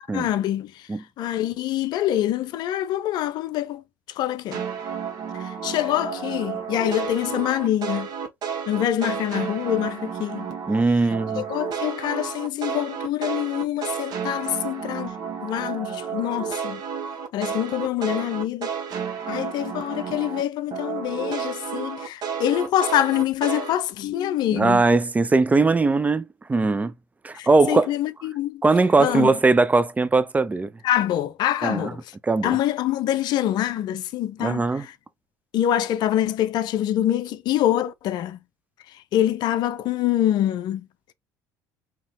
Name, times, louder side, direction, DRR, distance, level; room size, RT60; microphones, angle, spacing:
voice 1, 0.1-0.9 1.2-4.6 5.3-8.1 8.6-10.5 11.4-15.1 15.4-16.8 17.3-18.7 19.3-24.8 27.3-28.6 29.0-29.3 30.8-32.0 32.4-34.9 35.5-38.4 39.1-40.9, left 12 dB, 55° left, 0.5 m, -25 dB
sound 1, 4.5-10.8 11.1-20.4 20.7-23.7, right 7 dB, 50° right, 1.3 m, -31 dB
voice 2, 10.7-11.5 24.5-26.9 27.2-28.0 28.6-30.7 31.6-31.9 32.3-32.6 34.4-34.9, right 3 dB, 15° right, 0.4 m, -20 dB
3.8 x 2.9 x 2.9 m
hypercardioid pair, 65°, 9 cm